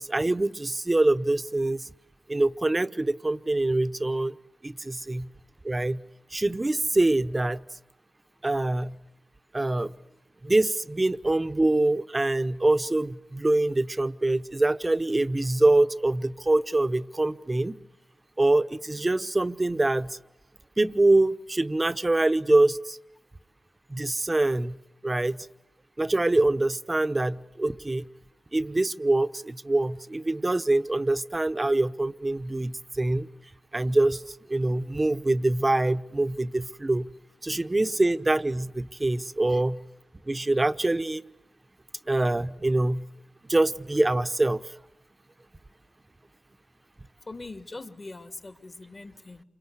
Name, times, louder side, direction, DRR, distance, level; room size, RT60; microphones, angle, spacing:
voice 1, 0.0-1.9 2.3-4.3 4.6-5.3 5.6-6.0 6.3-7.6 8.4-8.9 9.5-9.9 10.4-17.8 18.4-20.2 20.8-23.0 23.9-24.8 25.0-25.4 26.0-28.1 28.5-33.3 33.7-37.1 37.4-39.8 40.3-41.2 42.1-43.0 43.5-44.6, right 2 dB, 30° right, 12 dB, 0.9 m, -24 dB
voice 2, 47.3-49.4, left 2 dB, 45° left, 7 dB, 2.2 m, -42 dB
28.5 x 24.5 x 8.1 m, 0.94 s
cardioid pair, 50°, 0 cm